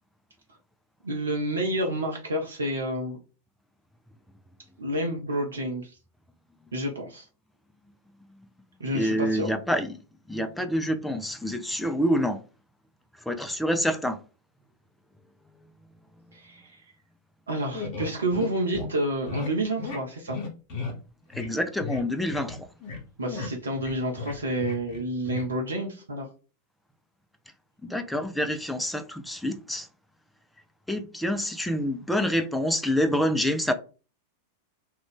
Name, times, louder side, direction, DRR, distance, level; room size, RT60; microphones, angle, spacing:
voice 1, 1.0-3.2 4.8-6.0 6.7-7.3 8.8-9.5 16.3-16.8 17.5-20.4 23.2-26.3, right 1 dB, 70° right, 0.5 m, -29 dB
voice 2, 8.9-10.0 10.3-12.4 13.3-14.2 21.3-22.6 27.8-29.9 30.9-33.7, equal, 5° left, 0.4 m, -27 dB
sound 1, 17.7-18.5 18.7-18.9 19.3-19.5 19.8-20.0 20.3-21.0 21.3-21.5 21.8-22.0 22.3-23.0 23.3-25.0 25.2-25.5, left 3 dB, 40° left, 1.1 m, -34 dB
2.5 x 2.3 x 3.5 m
figure-of-eight pair, 90°, 0 cm